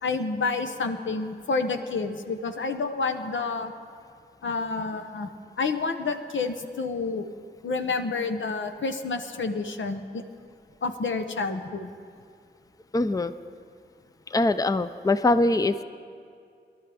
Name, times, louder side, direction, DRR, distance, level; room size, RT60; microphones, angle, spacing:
voice 1, 0.0-3.7 4.4-5.3 5.6-7.3 7.6-10.2 10.8-11.9, left 4 dB, 85° left, 7 dB, 0.8 m, -29 dB
voice 2, 12.9-13.3 14.3-15.8, left 2 dB, 20° left, 12 dB, 0.5 m, -23 dB
23.5 x 12.0 x 3.4 m, 2.3 s
cardioid pair, 55°, 19 cm